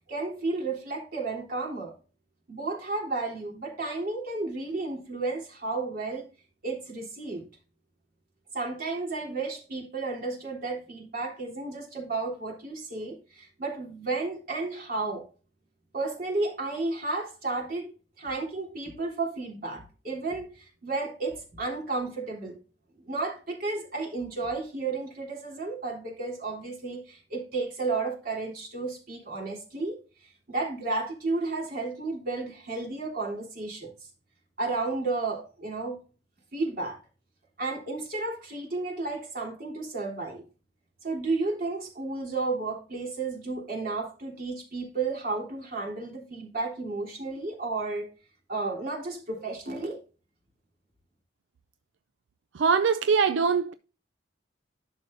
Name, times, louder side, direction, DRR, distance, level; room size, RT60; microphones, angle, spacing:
voice 1, 0.1-1.9 2.5-6.3 6.6-7.4 8.5-15.3 15.9-22.6 23.1-33.9 34.6-36.0 36.5-37.0 37.6-40.4 41.0-48.1 48.5-50.0, right 3 dB, 50° right, 3.5 m, -32 dB
voice 2, 52.5-53.7, right 5 dB, 85° right, 0.4 m, -22 dB
11.5 x 6.6 x 2.6 m
head